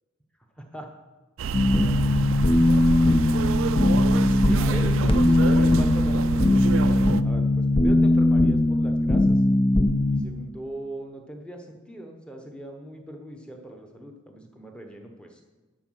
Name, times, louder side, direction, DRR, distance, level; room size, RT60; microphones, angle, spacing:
voice 1, 0.6-0.9 1.7-2.4 4.1-9.4 10.1-15.4, right 1 dB, 5° left, 3 dB, 1.0 m, -40 dB
sound 1, 1.4-7.2, right 6 dB, 60° right, 0.4 m, -28 dB
sound 2, 1.5-10.2, left 1 dB, 25° left, 0.4 m, -20 dB
11.5 x 4.7 x 6.4 m, 1.2 s
head